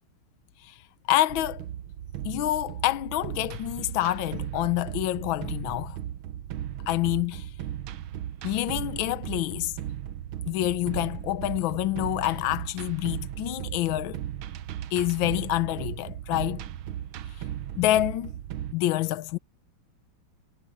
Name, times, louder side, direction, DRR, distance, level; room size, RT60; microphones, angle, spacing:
voice 1, 1.1-1.6 2.2-6.0 6.9-7.5 8.4-9.7 10.5-14.2 14.9-16.6 17.8-18.3 18.7-19.4, left 15 dB, 75° left, 1.5 m, -27 dB
sound 1, 1.3-18.7, right 11 dB, 80° right, 1.6 m, -36 dB
omnidirectional pair, 2.2 m